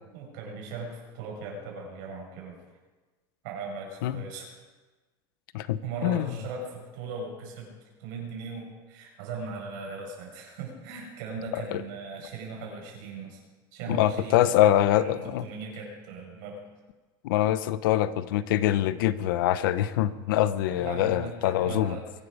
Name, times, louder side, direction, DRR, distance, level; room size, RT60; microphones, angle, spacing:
voice 1, 0.1-2.6 3.4-4.5 5.8-7.7 8.0-13.4 13.7-14.6 14.9-16.6 20.7-22.1, right 4 dB, 65° right, 0 dB, 6.1 m, -38 dB
voice 2, 5.5-6.3 11.5-11.8 13.9-15.5 17.2-22.0, left 12 dB, 80° left, 14 dB, 0.8 m, -24 dB
23.0 x 12.5 x 4.9 m, 1.3 s
supercardioid pair, 165°, 11 cm